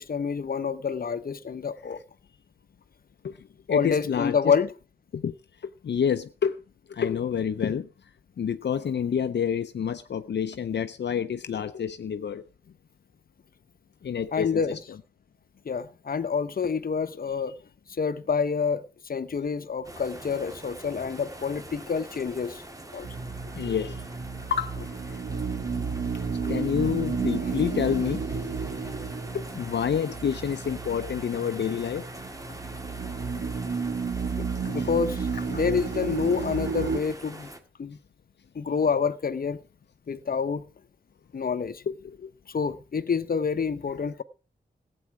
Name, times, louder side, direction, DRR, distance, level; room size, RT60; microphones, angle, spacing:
voice 1, 0.1-2.0 3.7-4.7 14.3-14.8 15.7-17.5 18.0-22.6 22.9-23.1 34.4-37.5 37.8-38.0 38.5-39.6 40.1-40.6 41.3-41.8 42.5-44.2, left 6 dB, 55° left, 0.9 m, -27 dB
voice 2, 3.7-4.5 5.1-5.3 5.8-6.6 6.9-7.9 8.4-12.4 14.0-14.6 23.5-24.1 24.5-25.2 26.4-28.2 29.3-32.1 34.8-34.9 41.9-42.3, left 7 dB, 75° left, 0.6 m, -28 dB
sound 1, 19.8-37.6, right 1 dB, 20° right, 2.0 m, -44 dB
sound 2, 23.0-37.0, right 5 dB, 80° right, 2.5 m, -32 dB
15.5 x 8.6 x 6.0 m
wide cardioid pair, 110°, 18 cm